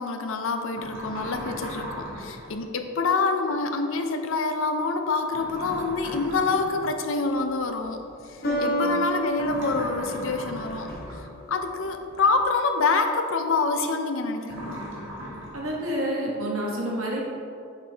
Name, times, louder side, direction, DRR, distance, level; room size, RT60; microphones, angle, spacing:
voice 1, 0.0-10.9 11.5-14.8, left 4 dB, 70° left, 6 dB, 0.5 m, -26 dB
sound 1, 0.7-2.5 5.3-6.9 9.3-11.3 14.4-15.7, equal, 60° right, 1.4 m, -38 dB
sound 2, 7.2-7.7 8.4-11.3, equal, 45° left, 1.0 m, -30 dB
voice 2, 8.5-9.0 15.5-17.2, right 1 dB, 75° right, -3 dB, 1.3 m, -29 dB
6.5 x 5.4 x 3.4 m, 2.6 s
head